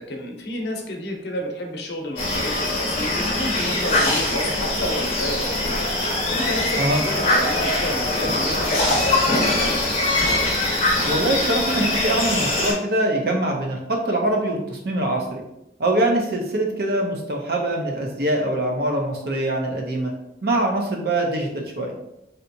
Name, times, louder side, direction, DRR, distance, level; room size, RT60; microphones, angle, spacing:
voice 1, 0.0-5.8 6.3-9.8, left 1 dB, 70° left, 1 dB, 0.7 m, -30 dB
sound 1, 2.2-12.7, left 2 dB, 35° left, 0.7 m, -22 dB
voice 2, 11.0-15.4 15.8-20.1 20.4-21.9, right 1 dB, 60° right, 1 dB, 0.6 m, -23 dB
3.3 x 2.8 x 2.6 m, 0.85 s
head